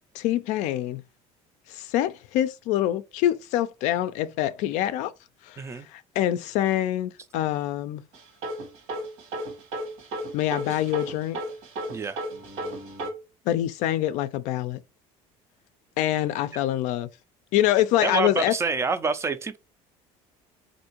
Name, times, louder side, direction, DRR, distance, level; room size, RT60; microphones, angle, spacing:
voice 1, 0.1-1.0 1.7-5.1 5.4-8.0 10.3-11.4 13.5-14.8 16.0-17.1 17.5-18.5, left 13 dB, 70° left, 0.4 m, -25 dB
sound 1, 8.1-13.1, right 1 dB, 70° right, 1.3 m, -33 dB
voice 2, 18.0-19.6, right 4 dB, 20° right, 0.3 m, -27 dB
3.5 x 2.6 x 2.9 m
cardioid pair, 125°, 13 cm